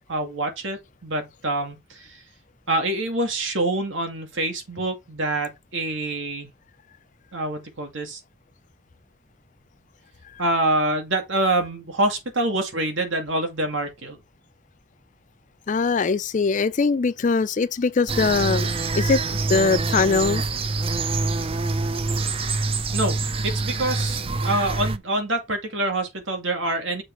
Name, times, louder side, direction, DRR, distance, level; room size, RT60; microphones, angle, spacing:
voice 1, 0.1-2.2 2.7-6.5 7.3-8.2 10.4-14.2 22.9-23.2 23.4-27.0, right 2 dB, 70° right, 2.0 m, -26 dB
voice 2, 15.7-18.7 18.9-19.2 19.5-20.4, left 4 dB, 40° left, 0.4 m, -21 dB
sound 1, 18.1-25.0, right 3 dB, 30° right, 0.5 m, -25 dB
6.5 x 3.4 x 4.5 m
head